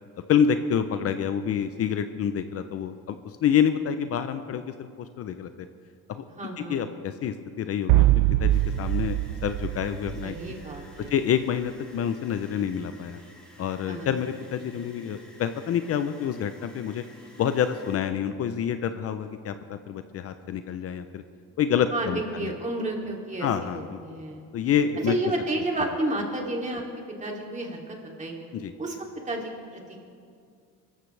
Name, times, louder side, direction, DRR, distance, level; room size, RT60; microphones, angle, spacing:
voice 1, 0.3-5.7 6.1-6.2 6.6-9.2 9.4-10.4 11.1-13.2 13.6-17.0 17.4-21.2 21.6-22.5 23.4-24.0 24.5-25.1 28.5-28.7, left 8 dB, 45° left, 10 dB, 0.7 m, -27 dB
voice 2, 6.3-6.8 10.2-11.1 13.9-14.1 21.9-24.4 25.1-26.8 27.2-28.3 28.8-29.0 29.3-29.8, right 1 dB, 25° right, 0 dB, 2.8 m, -31 dB
sound 1, 7.9-10.8, right 16 dB, 80° right, 0.5 m, -23 dB
sound 2, 8.5-18.0, equal, 5° left, 4.5 m, -53 dB
24.0 x 14.0 x 3.4 m, 2.3 s
cardioid pair, 115°, 32 cm